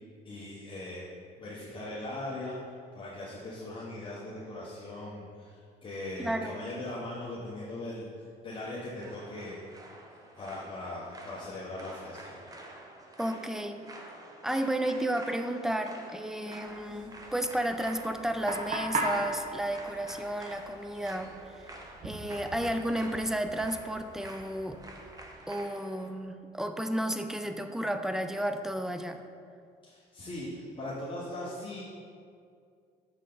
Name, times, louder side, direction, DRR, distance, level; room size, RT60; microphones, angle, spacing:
voice 1, 0.2-1.1 1.4-2.6 2.9-9.6 10.4-12.3 29.8-31.8, left 1 dB, 30° left, -6 dB, 1.2 m, -39 dB
voice 2, 6.2-6.6 13.2-13.8 14.4-21.6 22.0-24.8 25.5-29.2, right 1 dB, 5° right, 7 dB, 0.4 m, -32 dB
sound 1, 9.0-26.1, right 1 dB, 20° right, 0.9 m, -49 dB
sound 2, 16.6-25.3, right 2 dB, 50° right, 1.2 m, -39 dB
6.5 x 6.4 x 3.9 m, 2.3 s
cardioid pair, 110°, 17 cm